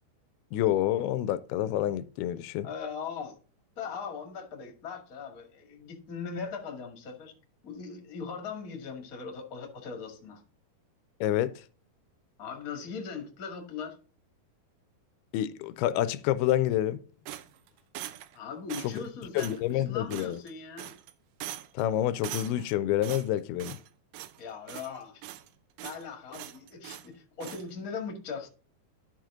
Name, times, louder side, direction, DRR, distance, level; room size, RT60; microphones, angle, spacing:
voice 1, 0.5-2.7 11.2-11.5 15.3-17.0 18.8-18.9 19.4-20.4 21.8-23.8, left 13 dB, 85° left, 2.5 m, -28 dB
voice 2, 2.6-3.4 3.8-7.3 7.6-10.4 12.4-14.0 18.3-20.9 24.4-25.2 25.8-28.5, left 5 dB, 35° left, 1.5 m, -39 dB
sound 1, 17.3-18.4 18.7-19.1 19.4-19.6 20.1-20.5 20.8-21.1 21.4-21.8 22.2-22.7 23.0-23.9 24.1-24.4 24.7-25.5 25.8-26.0 26.3-27.1 27.4-27.6, right 13 dB, 80° right, 2.0 m, -42 dB
12.0 x 4.9 x 3.7 m
omnidirectional pair, 4.5 m